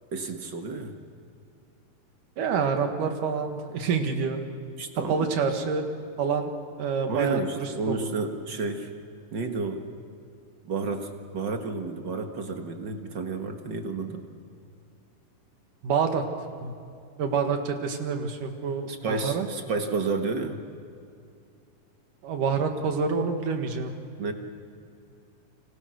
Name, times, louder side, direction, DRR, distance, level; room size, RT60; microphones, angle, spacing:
voice 1, 0.1-0.9 4.8-5.3 7.1-8.9 9.3-9.8 10.6-11.1 11.3-14.3 18.9-20.6 24.2-24.3, right 4 dB, 45° right, 5 dB, 1.7 m, -31 dB
voice 2, 2.4-4.4 5.1-5.9 6.2-6.5 6.8-8.1 15.8-16.2 16.6-16.7 17.2-19.5 22.2-23.9, right 5 dB, 70° right, 5 dB, 3.4 m, -27 dB
30.0 x 26.0 x 6.4 m, 2.4 s
omnidirectional pair, 3.9 m